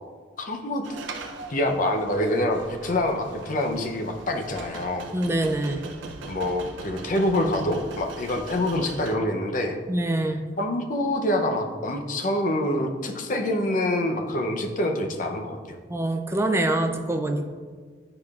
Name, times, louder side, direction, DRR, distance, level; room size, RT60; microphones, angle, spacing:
voice 1, 0.4-0.9 1.5-5.1 6.3-9.8 10.6-15.6, left 1 dB, 45° left, 4 dB, 0.5 m, -26 dB
sound 1, 0.8-9.2, right 3 dB, 75° right, 0.5 m, -41 dB
voice 2, 5.1-5.8 9.9-10.4 15.9-17.5, right 1 dB, 15° right, 5 dB, 0.3 m, -25 dB
9.5 x 4.9 x 2.4 m, 1.6 s
head